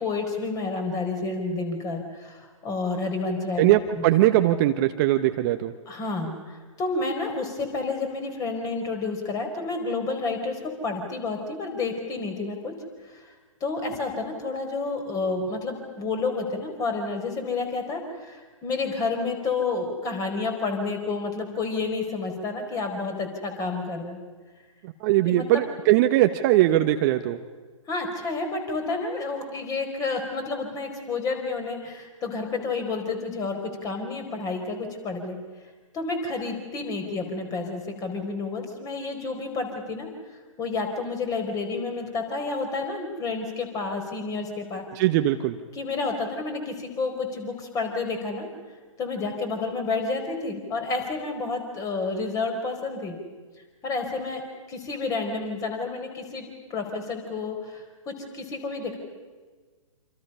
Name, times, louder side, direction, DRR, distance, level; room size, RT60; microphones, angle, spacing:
voice 1, 0.0-4.0 5.9-12.7 13.0-13.3 13.6-24.2 25.3-25.6 27.9-35.4 35.9-40.1 40.6-44.8 45.7-48.5 49.0-53.2 53.8-54.4 54.7-56.4 56.7-59.0, left 3 dB, 20° left, 5 dB, 4.4 m, -30 dB
voice 2, 3.6-5.7 25.0-27.4 45.0-45.6, right 14 dB, 35° right, 7 dB, 1.0 m, -20 dB
27.5 x 26.5 x 5.6 m, 1.4 s
figure-of-eight pair, 125°, 17 cm